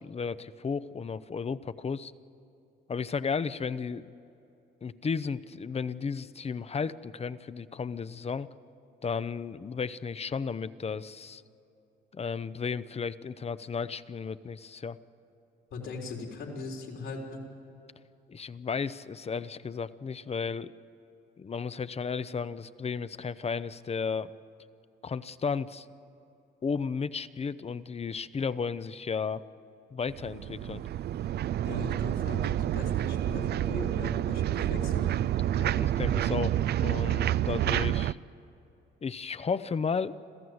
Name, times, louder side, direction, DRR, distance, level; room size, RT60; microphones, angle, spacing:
voice 1, 0.0-2.1 2.9-4.1 4.8-8.5 9.0-11.4 12.1-15.0 18.3-20.7 21.4-24.3 25.0-25.9 26.6-29.4 29.9-30.8 35.6-38.2 39.0-40.2, left 5 dB, 30° left, 15 dB, 0.7 m, -34 dB
voice 2, 15.7-17.4 31.6-35.1, left 4 dB, 80° left, 0 dB, 3.9 m, -39 dB
sound 1, 30.1-38.1, right 12 dB, 55° right, 0.4 m, -29 dB
27.0 x 15.0 x 8.0 m, 2.8 s
cardioid pair, 90°, 20 cm